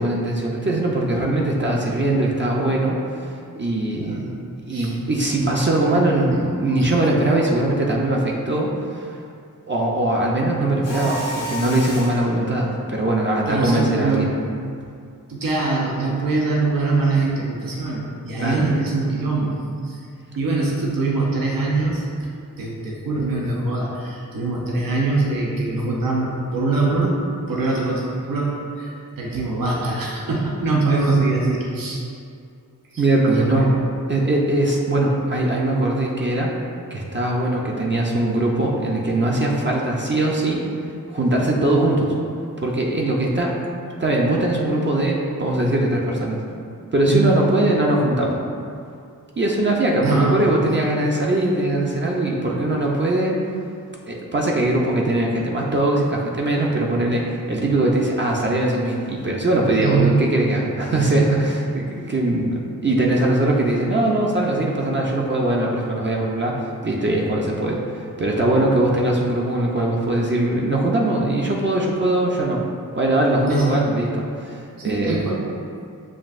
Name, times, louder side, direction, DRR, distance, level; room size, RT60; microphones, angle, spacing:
voice 1, 0.0-4.2 4.7-9.2 9.7-14.3 18.4-18.7 33.0-33.7 34.1-36.5 36.9-40.6 41.1-42.1 42.6-43.5 44.0-46.4 46.9-48.4 49.4-53.4 54.1-67.8 68.2-72.6 73.0-75.2, right 1 dB, 35° right, -3 dB, 0.5 m, -21 dB
voice 2, 4.0-4.3 4.7-4.9 6.8-6.9 13.5-14.3 15.3-19.6 19.8-20.0 20.4-22.1 22.6-27.2 27.5-32.0 32.9-33.0 33.3-33.8 47.1-47.3 50.0-50.5 59.8-60.3 60.9-61.4 73.5-73.9 74.8-75.5, right 3 dB, 75° right, -4 dB, 0.7 m, -23 dB
Mechanisms, 10.8-12.3, left 1 dB, 70° left, 0.8 m, -31 dB
7.3 x 2.6 x 2.5 m, 2.3 s
wide cardioid pair, 85°, 34 cm